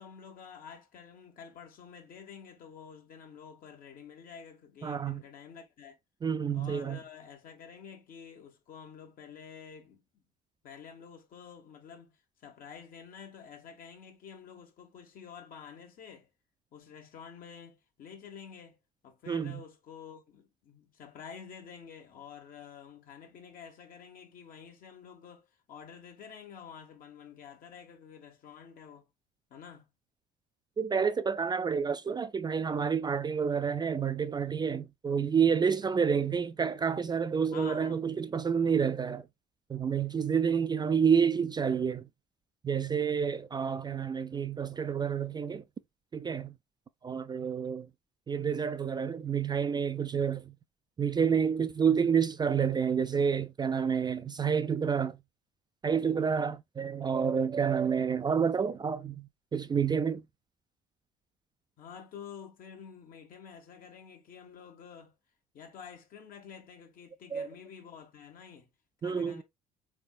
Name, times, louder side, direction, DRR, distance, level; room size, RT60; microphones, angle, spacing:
voice 1, 0.0-6.0 6.5-10.0 10.6-16.3 16.7-18.8 19.0-29.1 29.5-29.8 37.5-38.0 61.8-65.1 65.5-68.7 69.0-69.4, left 7 dB, 55° left, 1.2 m, -49 dB
voice 2, 4.8-5.2 6.2-7.0 19.3-19.6 30.8-39.3 39.7-42.1 42.6-45.6 46.1-46.5 47.0-47.9 48.3-50.5 51.0-55.2 55.8-60.2 67.3-67.5 69.0-69.4, right 6 dB, 25° right, 0.4 m, -29 dB
3.6 x 3.4 x 2.3 m
hypercardioid pair, 60°, 18 cm